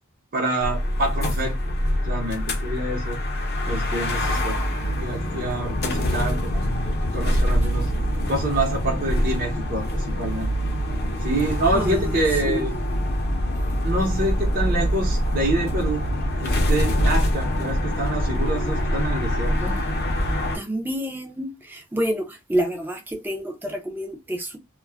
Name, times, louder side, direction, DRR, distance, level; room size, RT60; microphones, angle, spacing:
voice 1, 0.3-1.6 2.0-3.2 3.7-4.6 5.0-6.6 7.0-7.9 8.3-10.5 11.2-12.7 13.8-16.1 16.4-19.8, right 1 dB, 45° right, 0.8 m, -27 dB
sound 1, 0.6-20.6, equal, 45° left, 0.6 m, -24 dB
voice 2, 11.7-12.6 20.5-24.6, right 1 dB, 10° right, 0.5 m, -28 dB
2.3 x 2.1 x 3.3 m
head